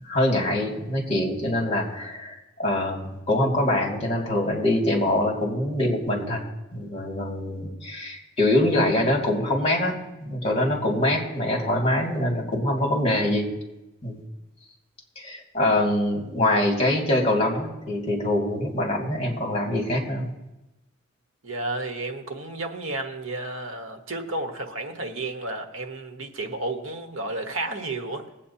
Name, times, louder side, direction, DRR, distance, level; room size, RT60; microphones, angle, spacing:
voice 1, 0.0-6.4 6.7-13.5 14.0-14.2 15.2-20.3, left 1 dB, 30° left, -2 dB, 2.3 m, -24 dB
voice 2, 21.4-28.2, right 2 dB, 75° right, 4 dB, 1.2 m, -32 dB
21.5 x 8.4 x 2.8 m, 0.98 s
head